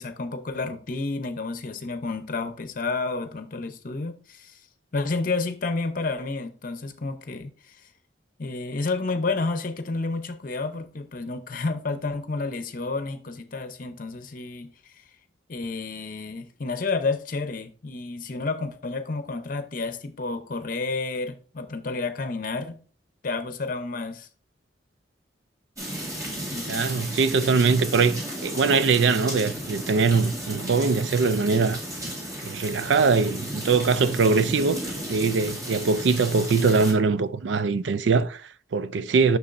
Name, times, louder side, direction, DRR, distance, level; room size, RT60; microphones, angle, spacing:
voice 1, 0.0-4.6 4.9-7.8 8.4-14.7 15.5-22.8 23.2-24.3 26.5-26.9, left 3 dB, 50° left, 0.7 m, -30 dB
sound 1, 25.8-36.9, right 1 dB, 20° right, 1.7 m, -34 dB
voice 2, 26.7-31.8 32.4-39.4, right 4 dB, 85° right, 0.4 m, -22 dB
7.0 x 6.1 x 2.6 m
head